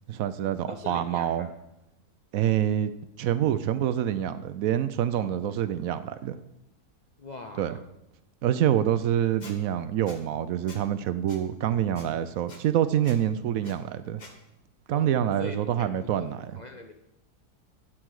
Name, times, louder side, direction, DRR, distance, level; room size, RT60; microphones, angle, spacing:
voice 1, 0.1-1.5 2.3-2.9 3.2-6.4 7.6-7.8 8.4-14.2 14.9-16.6, right 10 dB, 70° right, 13 dB, 0.9 m, -26 dB
voice 2, 0.7-1.5 5.1-5.6 7.2-7.8 14.9-16.3 16.6-16.9, left 3 dB, 60° left, 5 dB, 0.4 m, -42 dB
Squeak, 9.4-9.5 10.1-10.2 10.7-10.8 11.3-11.4 11.9-12.1 12.5-12.6 13.0-13.2 13.6-13.7 14.2-14.3, left 3 dB, 30° left, 1.2 m, -46 dB
11.5 x 7.5 x 4.7 m, 0.89 s
omnidirectional pair, 1.7 m